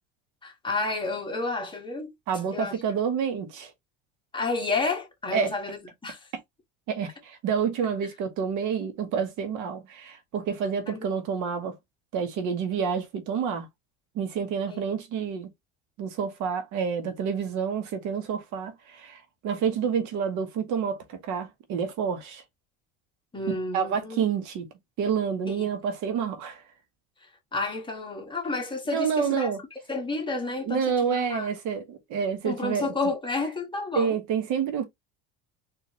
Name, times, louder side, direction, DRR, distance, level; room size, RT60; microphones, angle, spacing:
voice 1, 0.4-2.1 2.5-2.8 4.3-6.3 10.9-11.0 14.7-14.8 23.3-24.2 25.5-25.7 27.2-29.5 29.9-31.5 32.4-34.2, left 3 dB, 15° left, 1.5 m, -31 dB
voice 2, 2.3-3.7 5.3-5.5 6.9-11.7 12.1-13.7 14.1-15.5 16.0-22.4 23.7-24.7 25.0-26.6 28.9-29.6 30.6-32.9 33.9-34.8, right 7 dB, 60° right, 1.2 m, -28 dB
4.2 x 2.8 x 3.0 m
supercardioid pair, 120°, 34 cm